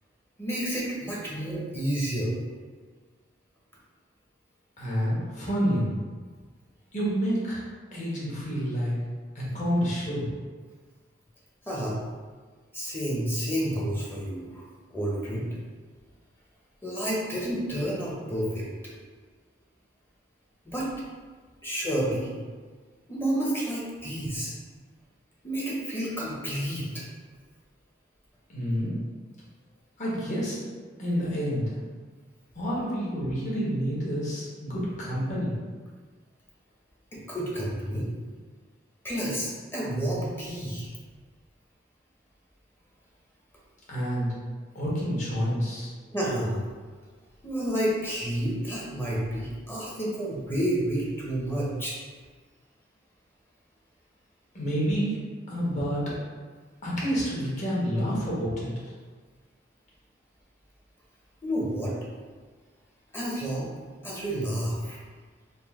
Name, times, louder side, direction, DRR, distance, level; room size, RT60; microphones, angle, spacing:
voice 1, 0.4-2.3 11.7-12.0 12.7-14.7 14.9-15.5 16.8-18.7 20.6-20.9 21.6-22.3 23.1-24.5 25.4-26.9 37.1-38.1 39.0-40.9 46.1-46.6 47.4-51.9 61.4-61.9 63.1-63.7 64.0-65.0, right 1 dB, 15° left, -5 dB, 0.8 m, -30 dB
voice 2, 4.8-5.9 6.9-7.6 7.9-8.9 9.3-10.3 28.5-29.0 30.0-30.6 31.0-31.7 32.5-35.5 43.9-44.3 44.7-45.9 54.5-55.2 55.5-56.0 56.8-58.7, equal, 45° left, -7 dB, 1.2 m, -28 dB
4.0 x 2.1 x 3.5 m, 1.5 s
head